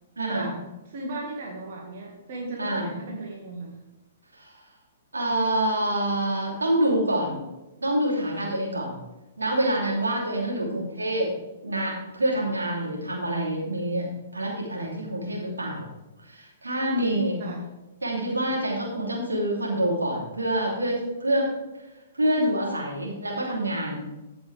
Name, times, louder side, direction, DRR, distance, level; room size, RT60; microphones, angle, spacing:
voice 1, 0.2-0.5 2.6-2.9 4.3-4.7 5.1-7.4 7.8-9.0 9.4-11.3 11.6-15.9 16.2-17.4 18.0-21.5 21.7-21.9 22.1-24.1, right 1 dB, 85° right, -3 dB, 3.1 m, -26 dB
voice 2, 0.9-3.8 10.5-10.9 17.4-17.6, right 2 dB, 55° right, -2 dB, 1.8 m, -36 dB
14.5 x 6.1 x 3.4 m, 1.0 s
figure-of-eight pair, 115°, 0 cm